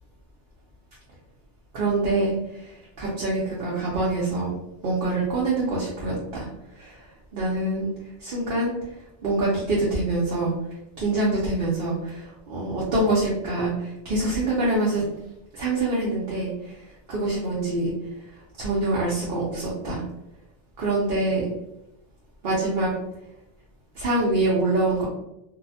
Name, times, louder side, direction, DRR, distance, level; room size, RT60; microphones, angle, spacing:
voice 1, 1.7-4.6 4.8-6.5 6.8-7.0 7.3-7.9 8.2-8.7 9.2-10.5 11.0-15.0 15.5-17.9 18.6-20.0 20.8-21.5 22.4-22.9 23.9-25.0, right 2 dB, 55° right, -6 dB, 0.8 m, -25 dB
2.6 x 2.0 x 2.7 m, 0.88 s
omnidirectional pair, 1.2 m